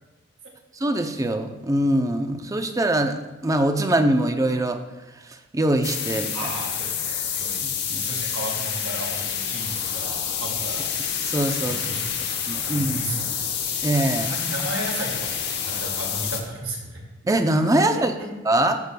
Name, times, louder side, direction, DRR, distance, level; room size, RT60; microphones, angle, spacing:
voice 1, 0.8-4.8 5.5-6.5 7.6-8.0 11.2-11.8 12.5-13.0 13.8-14.4 17.2-18.1 18.5-18.8, right 1 dB, 15° right, 7 dB, 0.5 m, -23 dB
sound 1, 5.8-16.4, left 8 dB, 55° left, 1.0 m, -28 dB
voice 2, 6.3-11.0 11.6-13.5 14.2-17.0 17.9-18.3, right 1 dB, 85° right, -2 dB, 2.2 m, -34 dB
14.0 x 6.6 x 2.2 m, 1.1 s
head